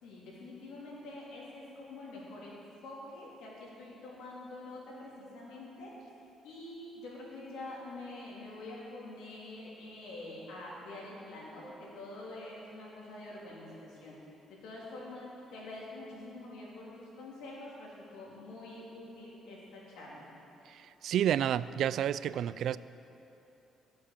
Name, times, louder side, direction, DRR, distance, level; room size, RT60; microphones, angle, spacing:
voice 1, 0.0-2.6 2.8-5.9 6.4-14.2 14.6-20.3, left 2 dB, 85° left, -5 dB, 3.5 m, -46 dB
sound 1, 11.6-14.9, right 2 dB, 10° right, 1.6 m, -60 dB
voice 2, 20.7-22.8, right 10 dB, 70° right, 17 dB, 0.3 m, -30 dB
14.0 x 7.7 x 7.0 m, 3.0 s
cardioid pair, 100°, 0 cm